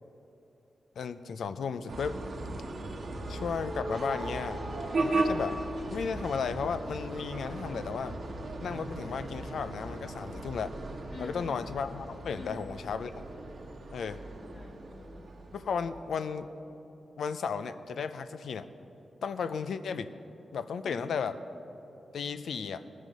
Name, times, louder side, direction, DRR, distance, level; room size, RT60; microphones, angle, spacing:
voice 1, 1.0-2.2 3.3-4.6 5.0-5.6 5.9-8.1 8.6-10.7 11.2-13.2 13.9-14.2 15.5-16.5 17.2-18.7 19.2-20.1 20.5-21.4 22.1-22.8, left 6 dB, 80° left, 11 dB, 0.5 m, -34 dB
sound 1, 1.9-16.2, right 2 dB, 65° right, 1.2 m, -37 dB
voice 2, 11.1-11.6 12.3-12.6 14.3-15.3 20.8-21.1, left 3 dB, 55° left, -2 dB, 2.3 m, -47 dB
18.0 x 6.4 x 5.3 m, 3.0 s
cardioid pair, 55°, 0 cm